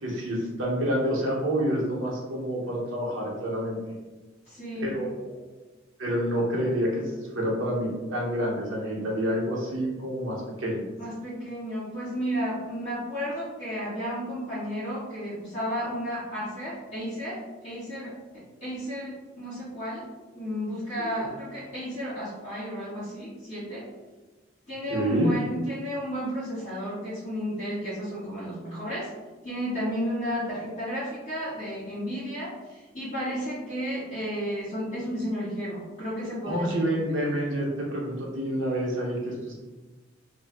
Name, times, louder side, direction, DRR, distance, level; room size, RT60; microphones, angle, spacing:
voice 1, 0.0-3.8 4.8-5.4 6.0-10.9 21.0-21.3 24.9-25.3 36.4-39.5, equal, 75° right, -4 dB, 0.9 m, -28 dB
voice 2, 4.4-4.9 11.0-20.1 20.3-23.9 24.7-29.1 29.4-36.8, equal, 35° left, -12 dB, 1.4 m, -33 dB
2.6 x 2.2 x 3.4 m, 1.2 s
head